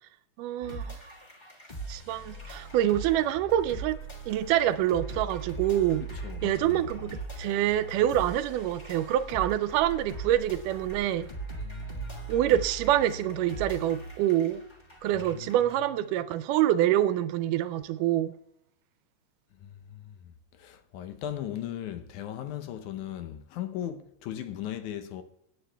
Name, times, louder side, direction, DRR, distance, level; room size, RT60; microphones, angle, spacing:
voice 1, 0.4-1.0 1.9-4.0 4.3-6.0 6.4-11.3 12.3-14.6 15.0-18.3, right 12 dB, 85° right, 2.1 m, -26 dB
sound 1, 0.6-15.8, right 3 dB, 35° left, 0.7 m, -40 dB
voice 2, 6.1-6.8 11.5-12.5 15.1-16.0 19.5-25.2, left 11 dB, 75° left, 2.1 m, -38 dB
25.5 x 9.4 x 2.3 m
omnidirectional pair, 3.7 m